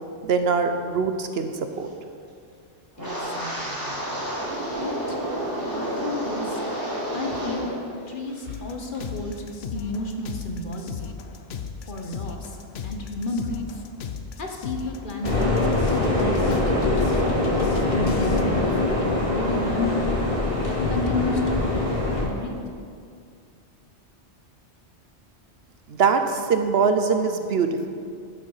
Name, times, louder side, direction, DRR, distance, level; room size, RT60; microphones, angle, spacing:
voice 1, 0.2-1.9 25.9-27.9, right 5 dB, 65° right, 7 dB, 0.9 m, -23 dB
voice 2, 3.0-4.0 4.8-5.2 5.7-6.6 7.1-7.7 8.1-11.2 11.9-13.8 14.4-15.6 15.9-17.1 17.9-20.2 20.9-22.7, left 2 dB, 50° left, 3 dB, 1.2 m, -32 dB
Wind, 3.0-7.8 8.1-8.5 8.9-9.2, right 1 dB, 20° right, 2.7 m, -30 dB
sound 1, 8.5-18.4, left 6 dB, 65° left, 0.9 m, -37 dB
sound 2, 15.2-22.2, left 2 dB, 30° left, 2.9 m, -23 dB
12.0 x 7.0 x 5.6 m, 2.3 s
omnidirectional pair, 1.2 m